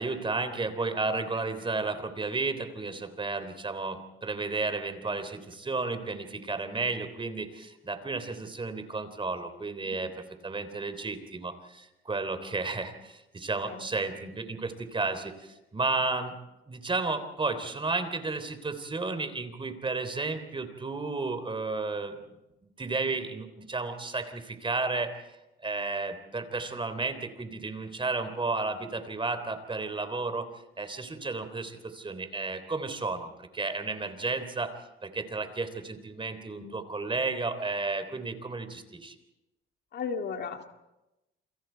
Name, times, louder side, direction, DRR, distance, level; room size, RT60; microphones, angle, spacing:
voice 1, 0.0-10.1 10.4-16.3 16.7-22.2 22.6-25.4 25.6-30.5 30.8-34.7 35.0-39.1, right 3 dB, 25° right, 10 dB, 3.5 m, -32 dB
voice 2, 39.9-40.7, left 5 dB, 60° left, 4 dB, 2.3 m, -36 dB
28.5 x 26.5 x 4.6 m, 0.96 s
cardioid pair, 90°, 20 cm